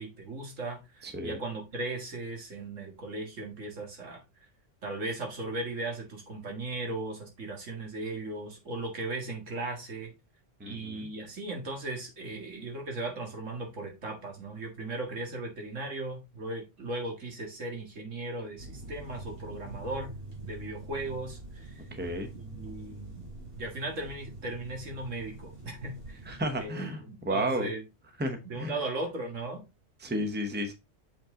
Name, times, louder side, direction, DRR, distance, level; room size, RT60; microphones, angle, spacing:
voice 1, 0.0-4.2 4.8-10.1 10.6-20.1 20.4-21.8 22.3-23.3 23.5-26.2 26.6-27.8 28.4-29.6, right 2 dB, 85° right, 2 dB, 2.3 m, -37 dB
voice 2, 1.0-1.4 10.6-11.1 21.9-22.3 26.3-27.7 28.2-28.7 30.0-30.7, equal, 10° right, 6 dB, 0.8 m, -32 dB
sound 1, 18.6-26.7, right 2 dB, 50° right, 3.1 m, -45 dB
6.9 x 5.4 x 3.7 m, 0.25 s
omnidirectional pair, 1.3 m